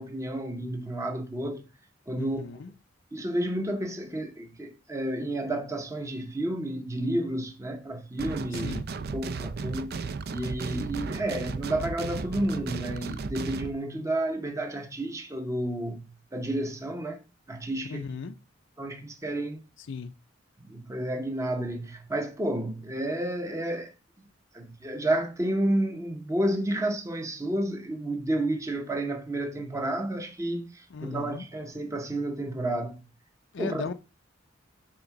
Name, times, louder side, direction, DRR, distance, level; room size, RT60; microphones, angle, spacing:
voice 1, 0.0-1.6 2.1-2.4 3.1-8.8 9.1-10.0 10.3-18.0 18.8-19.6 20.6-23.9 24.5-33.0 33.6-33.8, right 1 dB, 15° right, 0.7 m, -31 dB
voice 2, 2.2-2.7 8.5-8.9 17.8-18.3 19.8-20.1 30.9-31.5 33.5-33.9, left 5 dB, 65° left, 0.5 m, -36 dB
sound 1, 8.2-13.7, right 4 dB, 55° right, 0.5 m, -34 dB
7.7 x 3.6 x 5.8 m
head